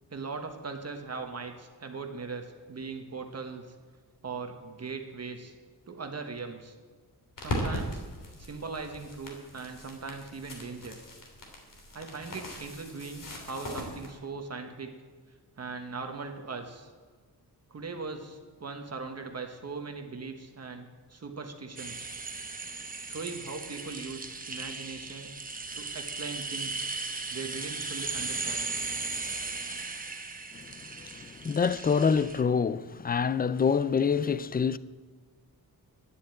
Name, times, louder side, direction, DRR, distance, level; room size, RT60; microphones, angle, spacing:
voice 1, 0.1-3.8 4.2-5.5 5.9-6.8 7.4-8.0 8.4-11.0 11.9-14.9 15.6-16.9 17.7-22.1 23.0-25.3 25.7-26.9 27.3-28.7, right 4 dB, 40° right, 1.2 m, -40 dB
sound 1, 7.4-14.1, equal, 55° left, 3.2 m, -39 dB
sound 2, 21.8-32.4, right 3 dB, 20° right, 0.9 m, -37 dB
voice 2, 30.5-34.8, left 6 dB, 25° left, 0.3 m, -27 dB
11.5 x 9.8 x 8.8 m
wide cardioid pair, 160°, 39 cm